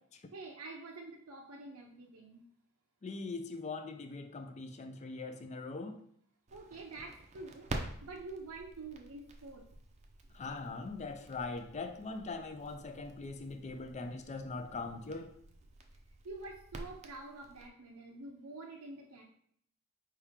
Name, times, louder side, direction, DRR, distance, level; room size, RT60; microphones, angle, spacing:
voice 1, 0.3-2.4 6.5-7.7 8.0-9.6 16.2-19.2, right 3 dB, 90° right, 0.6 m, -47 dB
voice 2, 3.0-6.0 10.3-15.3, left 3 dB, 35° left, 0.4 m, -41 dB
Crackle, 6.5-17.7, right 2 dB, 30° right, 0.5 m, -48 dB
4.8 x 2.8 x 3.5 m
head